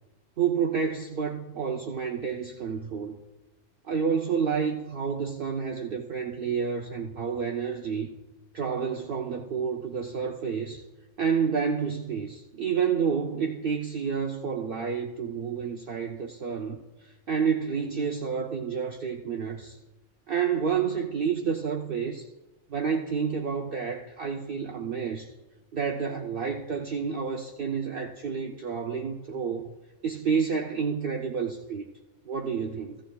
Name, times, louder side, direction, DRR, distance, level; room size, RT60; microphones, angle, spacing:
voice 1, 0.4-3.1 3.8-8.1 8.5-10.8 11.2-19.8 20.3-22.3 22.7-25.3 25.7-29.7 30.0-31.8 32.2-33.0, right 6 dB, 55° right, 2 dB, 0.8 m, -29 dB
15.0 x 15.0 x 2.3 m, 1.1 s
omnidirectional pair, 1.3 m